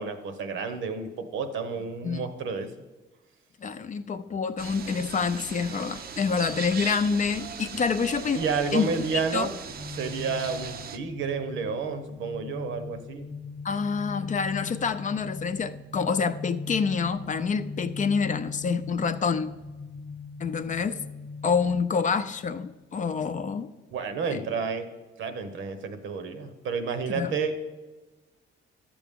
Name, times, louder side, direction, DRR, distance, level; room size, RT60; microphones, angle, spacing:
voice 1, 0.0-2.7 8.3-9.5 9.9-13.3 23.9-24.9 25.2-27.8, right 5 dB, 75° right, 9 dB, 0.9 m, -30 dB
voice 2, 3.6-8.4 8.7-8.9 9.3-9.5 13.6-19.5 20.4-21.0 21.4-23.7 24.3-24.4 27.1-27.3, left 5 dB, 40° left, 11 dB, 0.5 m, -27 dB
sound 1, 4.6-11.0, right 7 dB, 50° right, 0.5 m, -39 dB
sound 2, 9.7-22.7, left 4 dB, 20° left, 1.0 m, -40 dB
11.5 x 6.9 x 3.6 m, 1.2 s
cardioid pair, 90°, 20 cm